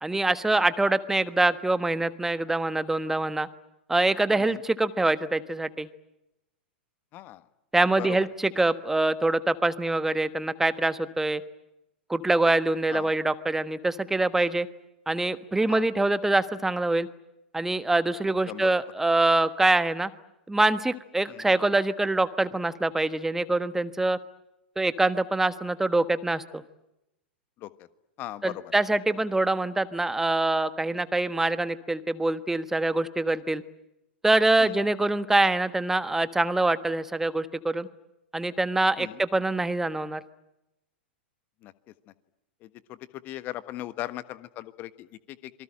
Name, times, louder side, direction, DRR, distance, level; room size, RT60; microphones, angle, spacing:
voice 1, 0.0-3.5 3.9-5.9 7.7-11.4 12.1-14.7 15.1-17.1 17.5-20.1 20.5-24.2 24.8-26.6 28.4-33.6 34.2-37.9 38.3-40.2, right 2 dB, 5° right, 14 dB, 1.3 m, -24 dB
voice 2, 7.1-7.4 8.0-8.2 12.9-13.1 15.7-15.9 18.5-18.7 21.3-21.5 27.6-27.9 28.2-28.7 34.6-34.8 39.0-39.2 41.6-41.7 42.6-45.5, left 15 dB, 35° left, 14 dB, 1.5 m, -39 dB
26.5 x 24.0 x 8.9 m, 0.88 s
figure-of-eight pair, 95°, 6 cm